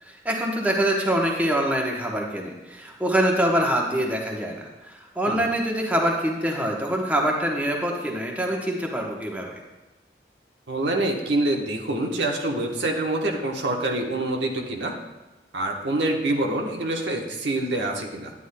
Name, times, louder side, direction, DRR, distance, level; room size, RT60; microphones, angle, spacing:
voice 1, 0.0-9.6, right 1 dB, 10° right, -1 dB, 1.0 m, -25 dB
voice 2, 10.7-15.0 15.5-18.3, right 2 dB, 80° right, 1 dB, 1.1 m, -26 dB
9.9 x 9.6 x 2.2 m, 1.1 s
head